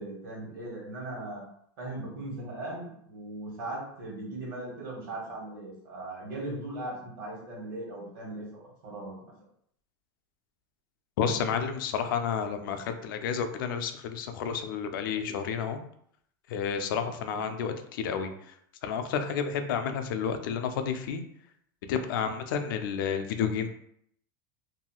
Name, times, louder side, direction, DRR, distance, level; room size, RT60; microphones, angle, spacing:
voice 1, 0.0-1.4 1.8-9.3 17.3-17.5, right 2 dB, 75° right, -3 dB, 1.4 m, -39 dB
voice 2, 11.2-15.8 16.5-18.5 18.8-21.2 21.9-23.7, left 7 dB, 80° left, 7 dB, 0.4 m, -31 dB
2.9 x 2.7 x 2.3 m, 0.68 s
supercardioid pair, 170°, 11 cm